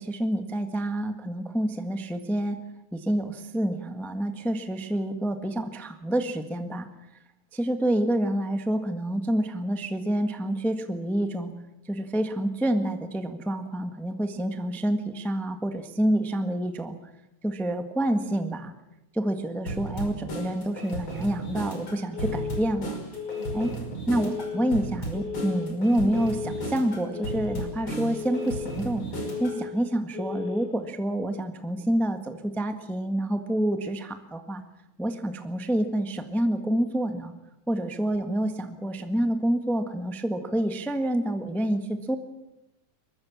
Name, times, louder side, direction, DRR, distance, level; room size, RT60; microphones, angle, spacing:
voice 1, 0.0-2.6 2.9-6.9 7.5-11.5 11.9-17.0 17.4-18.7 19.1-23.0 23.5-23.7 24.1-29.0 29.4-34.6 35.0-37.3 37.7-42.1, right 1 dB, ahead, 7 dB, 0.8 m, -28 dB
sound 1, 19.7-29.6, right 1 dB, 40° left, 6.2 m, -35 dB
Telephone, 22.1-22.7 23.1-23.7 24.1-24.7 25.1-25.7 26.1-26.7 27.1-27.7 28.1-28.7 29.1-29.7 30.1-30.7, left 7 dB, 25° right, 7.2 m, -34 dB
23.5 x 22.0 x 7.4 m, 0.91 s
omnidirectional pair, 3.3 m